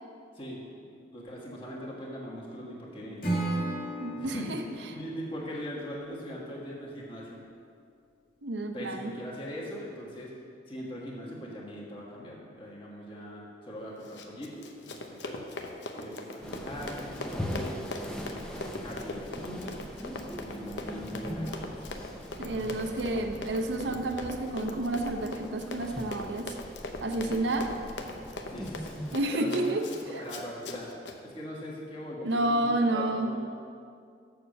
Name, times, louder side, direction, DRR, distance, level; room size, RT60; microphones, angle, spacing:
voice 1, 0.9-3.2 4.1-4.5 4.9-7.4 8.7-10.3 10.7-15.4 15.9-17.9 18.3-19.8 20.4-22.8 27.2-27.5 28.5-29.7 30.2-30.9 31.2-33.4, equal, 30° left, -4 dB, 1.6 m, -41 dB
Acoustic guitar / Strum, 3.2-6.4, right 1 dB, 50° left, 2.0 m, -35 dB
voice 2, 4.0-4.6 8.4-9.1 22.4-26.5 27.0-27.7 29.1-29.8 32.2-33.3, right 2 dB, 70° right, 5 dB, 0.7 m, -30 dB
Run, 14.0-31.2, left 2 dB, 75° left, 0.8 m, -41 dB
sound 1, 16.4-29.2, equal, 5° left, 0.5 m, -41 dB
6.8 x 6.8 x 6.5 m, 2.3 s
head